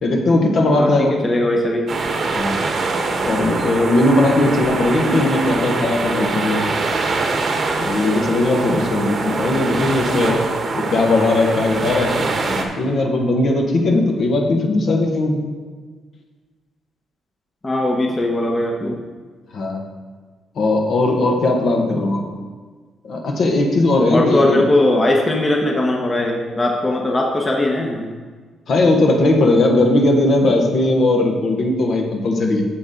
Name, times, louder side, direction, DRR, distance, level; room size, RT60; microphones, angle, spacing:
voice 1, 0.0-1.1 2.2-2.6 3.2-6.7 7.8-10.4 10.7-15.4 19.5-19.8 20.6-22.2 23.0-24.6 28.7-32.6, left 2 dB, 60° left, 1 dB, 1.4 m, -18 dB
voice 2, 0.8-1.9 17.6-19.0 24.1-28.1, left 1 dB, 25° left, 0 dB, 1.0 m, -19 dB
sound 1, 1.9-12.7, right 3 dB, 50° right, 1.1 m, -23 dB
8.5 x 6.9 x 3.8 m, 1.5 s
cardioid pair, 90°, 0 cm